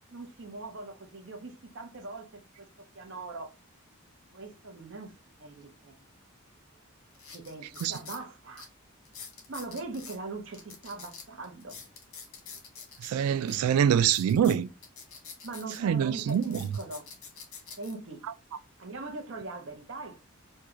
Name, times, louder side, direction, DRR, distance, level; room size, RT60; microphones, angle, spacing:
voice 1, 0.1-2.7 2.9-3.5 4.3-5.1 5.4-6.0 7.3-8.7 9.5-11.8 13.9-14.0 15.4-17.1 17.8-18.3 18.8-20.2, right 3 dB, 55° right, 0.7 m, -41 dB
sound 1, 6.5-6.6 7.1-8.2 8.6-8.7 9.0-10.2 10.5-13.1 13.5-13.6 14.0-15.8 16.2-17.9 18.6-18.8, left 6 dB, 75° left, 1.2 m, -46 dB
voice 2, 13.0-14.7 15.8-16.6, right 8 dB, 90° right, 0.3 m, -25 dB
3.6 x 2.3 x 2.9 m
head